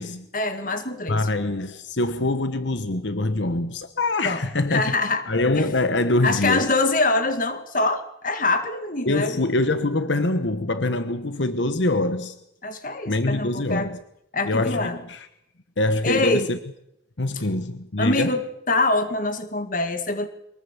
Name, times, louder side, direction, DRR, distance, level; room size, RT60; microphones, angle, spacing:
voice 1, 0.3-1.3 4.2-4.4 4.7-5.2 5.5-5.7 6.2-9.4 12.6-13.9 14.3-15.0 16.0-16.5 17.3-17.4 18.0-20.3, left 2 dB, 45° left, 2.0 m, -24 dB
voice 2, 1.1-4.9 5.3-6.7 9.0-12.4 13.1-14.0 14.5-15.3 15.8-16.6 17.2-18.4, left 2 dB, 75° left, 1.2 m, -24 dB
23.5 x 20.5 x 7.3 m
head